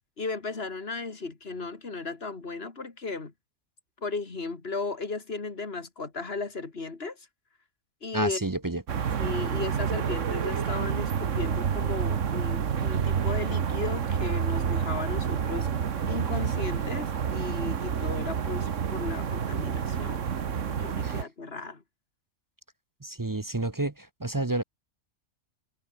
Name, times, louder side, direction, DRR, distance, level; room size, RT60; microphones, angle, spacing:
voice 1, 0.2-3.3 4.0-7.3 8.0-8.4 9.2-15.7 16.1-20.2 20.6-21.8, left 3 dB, 45° left, 2.7 m, -35 dB
voice 2, 8.1-8.8 21.0-21.1 23.0-24.6, right 2 dB, 20° right, 0.6 m, -30 dB
sound 1, 8.9-21.2, right 7 dB, 60° right, 1.6 m, -29 dB
omnidirectional pair, 1.4 m